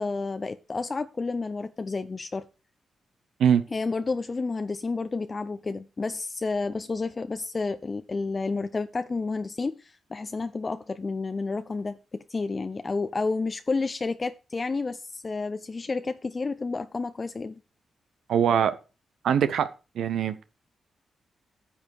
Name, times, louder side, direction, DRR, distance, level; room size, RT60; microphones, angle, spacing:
voice 1, 0.0-2.5 3.7-17.5, left 3 dB, 40° left, 0.7 m, -30 dB
voice 2, 18.3-18.8 19.2-19.7 20.0-20.4, right 8 dB, 80° right, 0.7 m, -22 dB
10.0 x 7.0 x 4.7 m
supercardioid pair, 45°, 0 cm